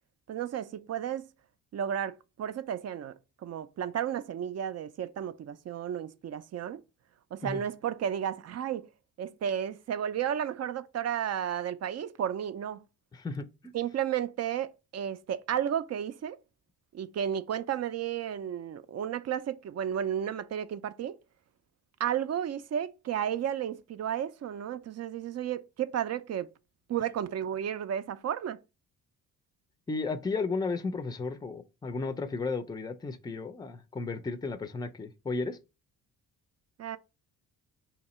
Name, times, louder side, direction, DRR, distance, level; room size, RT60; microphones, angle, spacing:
voice 1, 0.3-1.3 1.7-3.1 3.4-6.8 7.3-8.9 9.2-12.8 13.7-16.4 16.9-21.2 22.0-26.5 26.9-28.6 36.8-37.0, right 9 dB, 45° right, 0.4 m, -33 dB
voice 2, 13.1-13.7 29.9-35.6, left 3 dB, 10° left, 0.5 m, -34 dB
3.6 x 2.9 x 4.1 m
cardioid pair, 75°, 37 cm